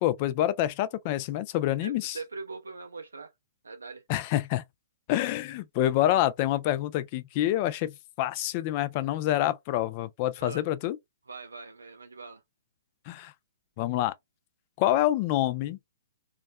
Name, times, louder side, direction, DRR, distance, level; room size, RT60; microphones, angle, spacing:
voice 1, 0.0-2.2 4.1-4.6 5.1-11.0 13.1-13.3 13.8-14.1 14.8-15.8, left 13 dB, 40° left, 0.3 m, -27 dB
voice 2, 1.8-3.3 3.6-4.0 10.4-10.6 11.3-12.4, right 4 dB, 90° right, 0.4 m, -41 dB
2.4 x 2.1 x 2.5 m
hypercardioid pair, 130°, 0 cm